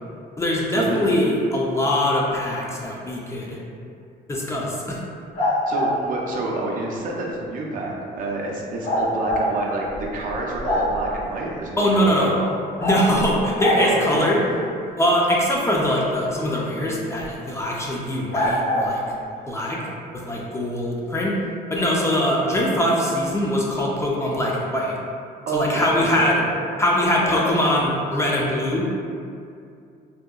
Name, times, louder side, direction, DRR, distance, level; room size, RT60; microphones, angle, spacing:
voice 1, 0.4-3.6 4.3-5.0 11.8-12.3 12.8-14.4 15.0-19.0 19.5-19.8 20.1-21.4 21.7-24.9 25.5-26.4 26.8-28.9, left 1 dB, 15° left, -4 dB, 0.3 m, -22 dB
sound 1, 5.3-5.9 8.8-9.4 9.9-10.0 10.3-11.1 12.8-13.0 13.6-13.8 17.2-17.3 18.3-18.9, left 1 dB, 70° left, 0.9 m, -22 dB
voice 2, 5.7-12.5 13.8-14.4 25.5-26.5 27.2-27.5, right 2 dB, 55° right, -2 dB, 0.4 m, -28 dB
2.7 x 2.1 x 2.3 m, 2.4 s
cardioid pair, 110°, 17 cm